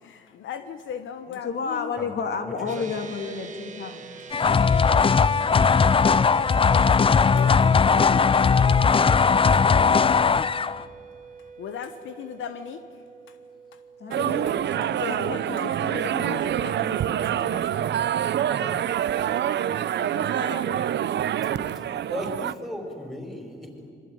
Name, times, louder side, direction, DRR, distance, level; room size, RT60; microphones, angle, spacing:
voice 1, 0.0-1.9 7.3-8.5 11.6-12.8 15.0-17.9 19.9-21.0, left 8 dB, 75° left, 9 dB, 1.3 m, -38 dB
voice 2, 1.3-4.2 14.0-14.4 15.1-16.4, left 5 dB, 55° left, 5 dB, 2.4 m, -31 dB
voice 3, 2.4-2.9 9.4-9.8 14.1-14.9 18.5-18.8 21.4-23.9, left 1 dB, ahead, 4 dB, 5.4 m, -37 dB
sound 1, 2.7-16.3, right 5 dB, 40° right, 2.2 m, -44 dB
sound 2, 4.3-10.8, left 5 dB, 25° left, 0.6 m, -19 dB
sound 3, 14.1-22.5, right 10 dB, 65° right, 0.8 m, -26 dB
26.5 x 23.0 x 9.4 m, 2.5 s
cardioid pair, 90°, 20 cm